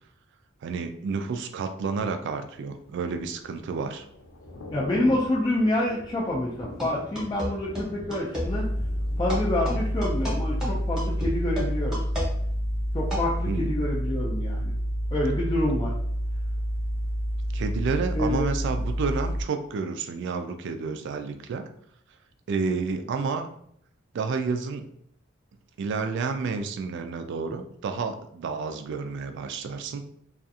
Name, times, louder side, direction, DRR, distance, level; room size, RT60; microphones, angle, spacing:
voice 1, 0.6-4.0 13.5-13.7 17.5-21.7 22.5-23.5 24.1-24.9 25.8-30.0, right 4 dB, 60° right, 7 dB, 0.3 m, -30 dB
Thunder / Rain, 2.7-12.6 13.0-13.2, left 1 dB, 75° left, 0.5 m, -45 dB
voice 2, 4.7-8.7 9.2-12.0 12.9-14.7 15.1-15.9 18.1-18.5, left 1 dB, 20° left, -5 dB, 0.4 m, -27 dB
sound 1, 6.8-8.5 9.3-13.4, equal, 5° right, 0.9 m, -33 dB
sound 2, 8.4-19.4, equal, 85° right, 0.7 m, -28 dB
2.4 x 2.4 x 2.6 m, 0.68 s
head